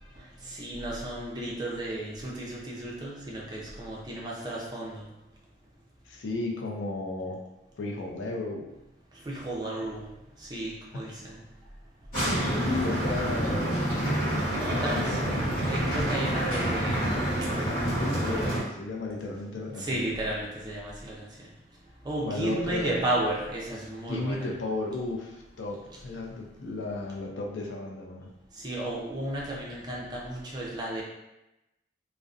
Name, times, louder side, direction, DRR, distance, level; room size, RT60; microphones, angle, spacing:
voice 1, 0.5-5.0 9.3-10.0 10.5-11.3 14.6-15.2 15.7-17.2 19.7-21.2 22.0-24.5 28.6-31.0, right 1 dB, 20° right, -4 dB, 0.4 m, -33 dB
voice 2, 6.1-7.4 7.8-8.7 10.9-11.0 12.6-14.0 14.7-15.5 18.0-20.0 22.2-23.0 24.1-28.3, left 2 dB, 85° left, 0 dB, 0.4 m, -34 dB
sound 1, 12.1-18.6, right 1 dB, 50° left, 1.1 m, -28 dB
2.6 x 2.0 x 2.4 m, 0.96 s
head